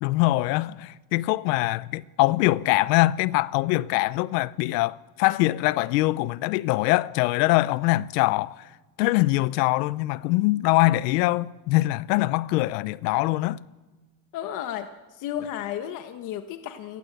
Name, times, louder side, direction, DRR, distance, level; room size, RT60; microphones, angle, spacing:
voice 1, 0.0-8.6 9.0-13.6, left 19 dB, 85° left, 1.0 m, -23 dB
voice 2, 14.3-17.0, left 10 dB, 40° left, 1.3 m, -33 dB
28.5 x 21.0 x 8.3 m
cardioid pair, 175°, 48 cm